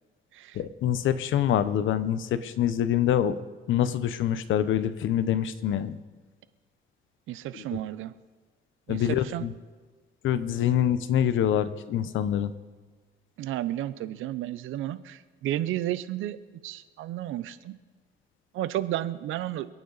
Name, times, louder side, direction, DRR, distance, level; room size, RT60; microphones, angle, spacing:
voice 1, 0.5-3.4 3.7-6.0 7.5-7.6 8.9-9.5 10.2-12.5, left 10 dB, 80° left, 13 dB, 1.0 m, -25 dB
voice 2, 7.3-8.1 8.9-9.5 13.4-17.7 18.5-19.7, right 13 dB, 85° right, 15 dB, 0.7 m, -32 dB
27.0 x 9.2 x 4.1 m, 1.4 s
cardioid pair, 90°, 20 cm